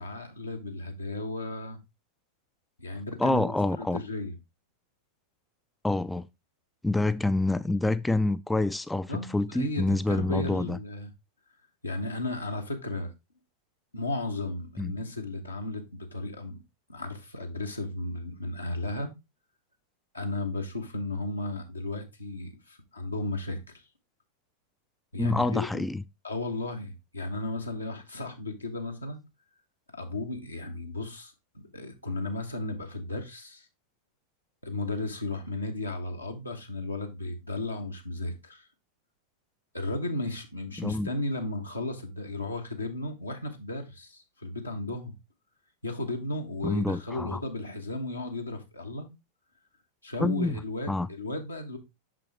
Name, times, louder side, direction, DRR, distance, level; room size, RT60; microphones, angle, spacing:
voice 1, 0.0-1.8 2.8-4.3 9.1-11.1 11.8-13.1 13.9-16.6 16.9-19.1 20.1-23.6 25.1-25.8 26.2-29.2 29.9-33.7 34.6-38.7 39.7-45.1 45.8-49.1 50.0-51.8, left 2 dB, 80° left, 1.2 m, -34 dB
voice 2, 3.2-4.0 5.8-6.3 6.8-10.8 14.8-15.0 25.2-26.0 40.8-41.1 46.6-47.4 50.2-50.6 50.9-51.1, left 2 dB, 5° left, 0.3 m, -27 dB
6.2 x 5.7 x 3.2 m
figure-of-eight pair, 90°, 0 cm